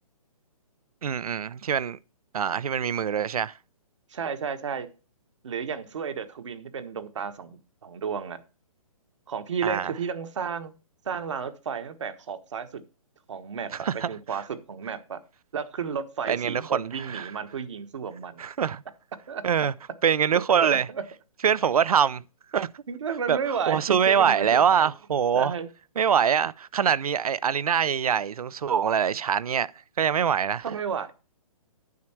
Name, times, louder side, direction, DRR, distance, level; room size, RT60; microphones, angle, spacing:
voice 1, 1.0-2.0 2.3-3.6 9.6-9.9 13.7-14.1 16.3-17.3 18.4-18.8 19.4-19.7 20.0-20.9 21.4-22.2 22.5-22.8 23.3-25.5 26.0-29.7 30.0-30.6, right 8 dB, 80° right, 0.6 m, -24 dB
voice 2, 4.1-4.9 5.4-8.4 9.3-10.7 11.0-12.8 13.3-15.2 15.5-18.4 19.3-19.4 20.9-21.0 22.9-24.9 25.3-25.7 30.6-31.1, right 6 dB, 55° right, 1.3 m, -32 dB
9.4 x 6.4 x 4.5 m
hypercardioid pair, 170°, 19 cm